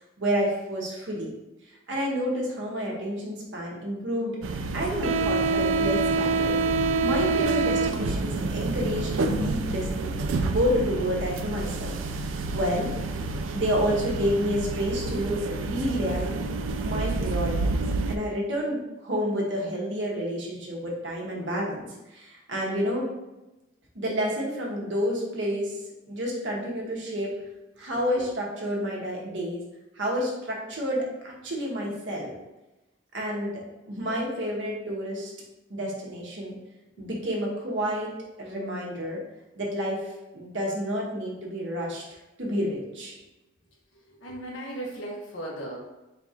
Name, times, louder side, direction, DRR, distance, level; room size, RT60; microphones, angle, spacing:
voice 1, 0.2-1.3 1.9-6.5 7.0-13.2 13.5-17.8 18.1-23.0 23.9-25.8 26.1-27.3 27.8-29.6 29.9-32.3 33.1-35.3 35.7-36.6 37.0-38.1 38.4-39.2 39.6-40.1 40.3-42.0 42.4-43.1, equal, 65° right, -3 dB, 1.1 m, -29 dB
sound 1, 4.4-18.2, right 3 dB, 80° right, 0.4 m, -27 dB
voice 2, 44.1-45.9, right 1 dB, 85° left, -3 dB, 1.2 m, -36 dB
4.0 x 2.4 x 4.2 m, 1.0 s
head